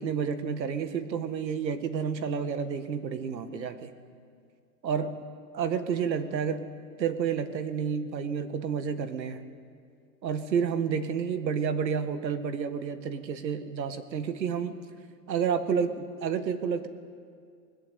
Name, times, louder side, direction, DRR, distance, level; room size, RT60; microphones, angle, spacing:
voice 1, 0.0-3.9 4.8-5.2 5.5-6.7 7.0-9.4 10.2-14.8 15.3-16.9, right 6 dB, 85° right, 10 dB, 1.9 m, -30 dB
19.5 x 15.0 x 9.4 m, 2.2 s
hypercardioid pair, 175°, 50 cm